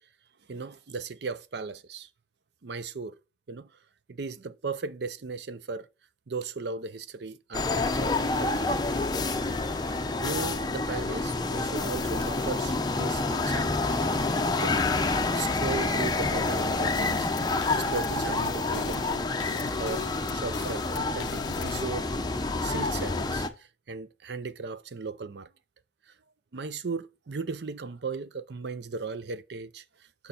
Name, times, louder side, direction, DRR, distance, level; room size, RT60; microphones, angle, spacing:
voice 1, 0.5-2.1 2.6-3.1 3.5-3.7 4.1-5.9 6.3-8.7 10.1-13.8 14.5-14.9 15.3-19.3 19.8-22.1 22.6-25.5 26.5-30.3, right 4 dB, 60° right, 0.5 m, -37 dB
sound 1, 7.5-23.5, left 3 dB, 20° left, 0.6 m, -28 dB
sound 2, 16.7-21.9, left 7 dB, 65° left, 0.4 m, -41 dB
6.6 x 5.6 x 5.6 m
head